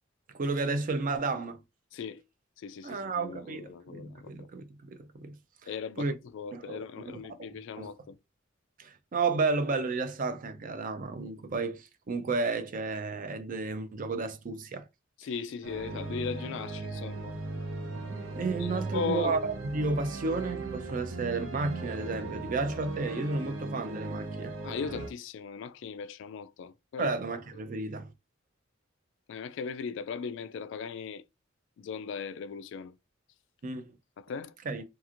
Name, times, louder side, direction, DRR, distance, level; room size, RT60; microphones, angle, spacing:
voice 1, 0.3-1.6 2.8-5.4 5.6-5.7 6.0-6.1 6.5-7.9 8.8-14.9 18.1-24.5 27.0-28.1 33.6-33.9 34.7-34.8, right 3 dB, 45° right, 0.4 m, -32 dB
voice 2, 1.9-2.2 2.6-4.3 5.7-8.2 15.2-17.3 18.6-19.4 24.6-27.1 29.3-31.2 31.8-32.9 34.2-34.5, left 6 dB, 65° left, 0.3 m, -38 dB
sound 1, 15.6-25.1, right 2 dB, 75° right, 0.7 m, -38 dB
2.9 x 2.4 x 2.4 m
head